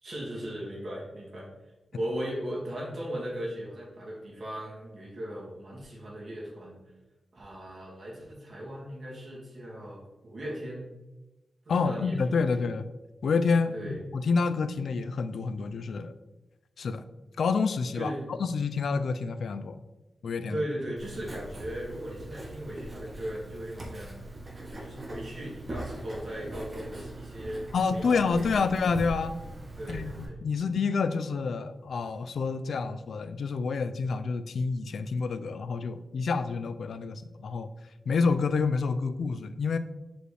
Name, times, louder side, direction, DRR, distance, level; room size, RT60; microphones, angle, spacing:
voice 1, 0.0-1.5 1.9-6.8 7.3-10.9 11.7-12.7 13.7-14.0 17.9-18.3 20.5-27.6 27.9-28.7 29.8-30.4, equal, 45° right, -5 dB, 2.2 m, -38 dB
voice 2, 11.7-12.9 13.2-16.1 16.8-17.0 17.4-18.1 18.4-19.8 20.2-20.6 27.7-29.4 29.9-37.7 38.1-39.8, left 4 dB, 75° left, 11 dB, 0.4 m, -28 dB
Writing, 21.0-30.3, right 1 dB, 25° right, 1.3 m, -41 dB
6.3 x 5.1 x 3.3 m, 1.1 s
wide cardioid pair, 135°, 0 cm